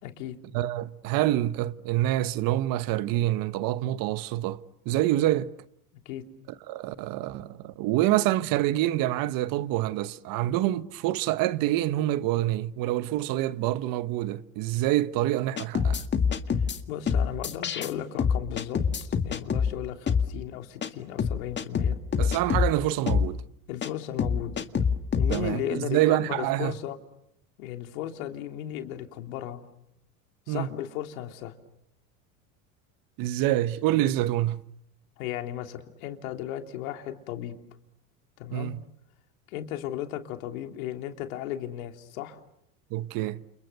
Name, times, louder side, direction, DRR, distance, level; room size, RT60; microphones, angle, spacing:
voice 1, 0.0-0.4 6.0-6.2 16.9-22.0 23.7-24.6 25.2-27.0 27.6-29.6 30.5-31.5 35.2-37.6 38.4-38.7 39.5-42.4, left 11 dB, 80° left, 3.3 m, -35 dB
voice 2, 0.5-5.5 6.7-16.0 22.2-23.4 25.3-26.7 30.5-30.7 33.2-34.7 38.5-38.8 42.9-43.5, right 14 dB, 55° right, 1.2 m, -26 dB
son-drums, 15.6-16.8 17.1-17.9 18.2-19.7 20.1-20.3 20.8-20.9 21.2-22.7 23.1-23.3 23.8-23.9 24.2-25.4, left 6 dB, 25° left, 1.9 m, -25 dB
29.5 x 29.5 x 6.8 m
supercardioid pair, 120°, 41 cm